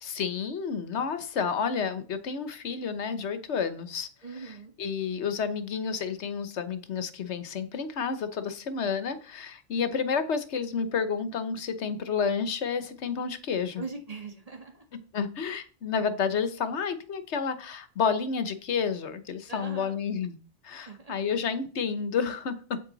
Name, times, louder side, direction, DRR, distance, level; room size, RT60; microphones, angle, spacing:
voice 1, 0.0-4.1 4.4-13.8 14.9-20.4 20.6-22.8, left 6 dB, 80° left, 11 dB, 1.2 m, -30 dB
voice 2, 4.2-4.7 13.8-14.9 19.5-20.0 20.9-21.1, right 3 dB, 35° right, 3 dB, 1.8 m, -40 dB
8.1 x 7.8 x 3.9 m, 0.39 s
omnidirectional pair, 1.1 m